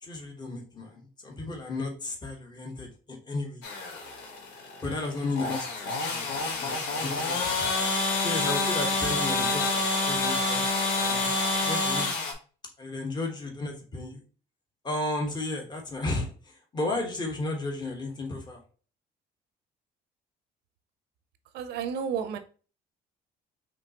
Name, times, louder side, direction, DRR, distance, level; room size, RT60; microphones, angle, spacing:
voice 1, 0.0-3.6 4.8-7.8 8.2-10.7 10.9-11.3 11.6-12.1 12.8-14.2 14.8-18.6, left 2 dB, 25° left, 1 dB, 1.3 m, -34 dB
sound 1, 3.6-12.3, left 3 dB, 85° left, 1.2 m, -28 dB
voice 2, 21.5-22.4, right 7 dB, 80° right, 9 dB, 0.6 m, -31 dB
5.2 x 3.2 x 2.9 m, 0.38 s
cardioid pair, 110°, 17 cm